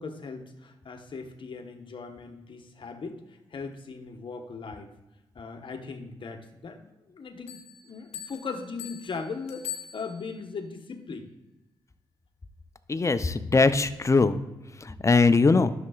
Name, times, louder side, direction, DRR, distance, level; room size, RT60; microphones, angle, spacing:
voice 1, 0.0-4.9 5.3-11.3, left 4 dB, 55° left, 5 dB, 1.2 m, -39 dB
sound 1, 7.5-10.5, left 11 dB, 90° left, 0.9 m, -42 dB
voice 2, 12.9-14.4 14.8-15.7, left 3 dB, 30° left, 12 dB, 0.6 m, -21 dB
11.0 x 6.7 x 2.4 m, 1.0 s
supercardioid pair, 50°, 10 cm